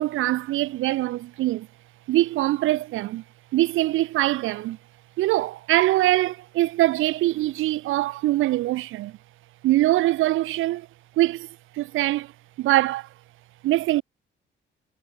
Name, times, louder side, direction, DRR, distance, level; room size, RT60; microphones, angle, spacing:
voice 1, 0.0-1.7 2.1-3.2 3.5-4.8 5.2-9.2 9.6-10.9 11.2-11.5 11.7-12.3 12.6-13.1 13.6-14.0, right 16 dB, 85° right, 1.0 m, -23 dB
cardioid pair, 90°, 20 cm